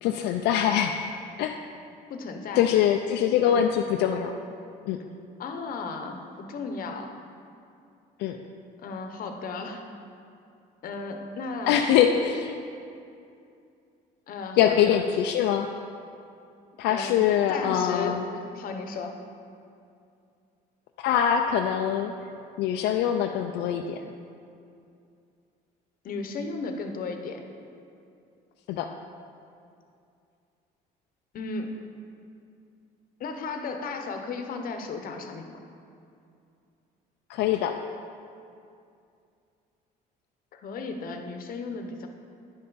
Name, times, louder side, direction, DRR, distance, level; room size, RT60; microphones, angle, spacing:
voice 1, 0.0-1.0 1.4-1.6 2.6-4.4 4.9-5.0 8.2-8.4 11.7-12.5 14.6-15.7 16.8-18.2 21.0-22.1 22.6-24.1 28.7-28.9 37.3-37.8, left 9 dB, 85° left, 4 dB, 0.4 m, -23 dB
voice 2, 2.1-2.7 3.5-3.7 5.4-7.1 8.8-9.8 10.8-11.8 14.3-15.0 16.9-17.2 17.5-19.1 26.0-27.4 31.3-31.7 33.2-35.5 40.5-42.1, left 4 dB, 55° left, 5 dB, 0.9 m, -35 dB
10.5 x 5.6 x 4.0 m, 2.5 s
cardioid pair, 110°, 17 cm